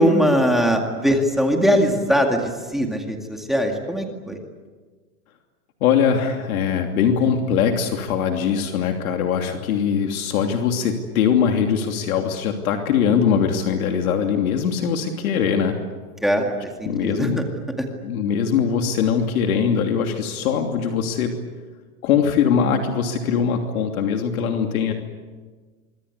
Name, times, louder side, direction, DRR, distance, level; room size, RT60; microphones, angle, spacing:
voice 1, 0.0-4.4 16.2-16.5 16.8-17.3 17.8-17.9, equal, ahead, 2 dB, 2.1 m, -20 dB
voice 2, 5.8-15.8 16.9-17.5 18.0-21.3 22.0-24.9, left 7 dB, 65° left, 3 dB, 3.0 m, -21 dB
25.5 x 24.5 x 8.4 m, 1.4 s
supercardioid pair, 165°, 46 cm